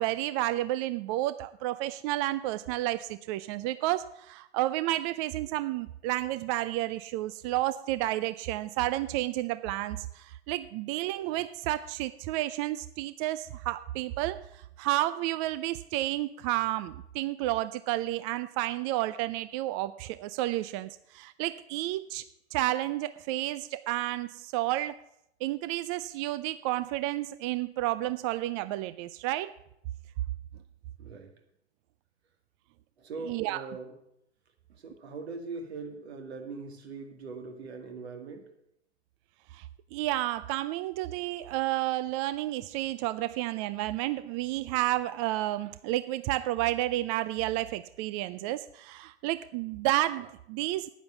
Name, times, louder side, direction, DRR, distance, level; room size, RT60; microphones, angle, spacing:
voice 1, 0.0-22.2 22.5-25.0 25.4-29.5 33.3-33.6 39.5-39.6 39.9-50.9, right 16 dB, 30° right, 14 dB, 0.4 m, -31 dB
voice 2, 31.0-31.3 33.0-33.9 34.7-38.5, right 4 dB, 65° right, 5 dB, 2.3 m, -41 dB
9.3 x 9.2 x 7.0 m, 0.77 s
figure-of-eight pair, 105°, 34 cm